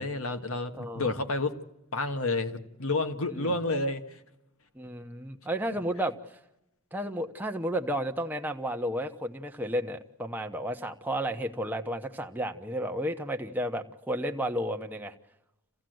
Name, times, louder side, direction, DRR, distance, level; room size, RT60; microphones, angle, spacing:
voice 1, 0.0-1.6 1.9-4.2, left 2 dB, 70° left, 8 dB, 1.7 m, -30 dB
voice 2, 0.8-1.1 3.3-3.5 4.7-6.2 6.9-15.1, equal, 10° right, 4 dB, 1.0 m, -32 dB
27.0 x 16.5 x 7.9 m, 0.89 s
head